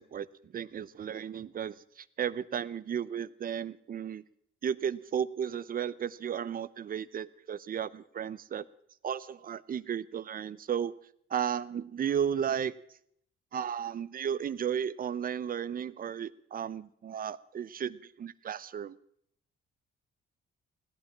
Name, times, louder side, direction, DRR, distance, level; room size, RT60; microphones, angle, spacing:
voice 1, 0.0-4.2 4.6-8.7 9.0-10.9 11.3-12.7 13.5-19.0, right 8 dB, 45° right, 17 dB, 0.7 m, -34 dB
17.0 x 10.5 x 7.3 m, 0.67 s
cardioid pair, 90°, 20 cm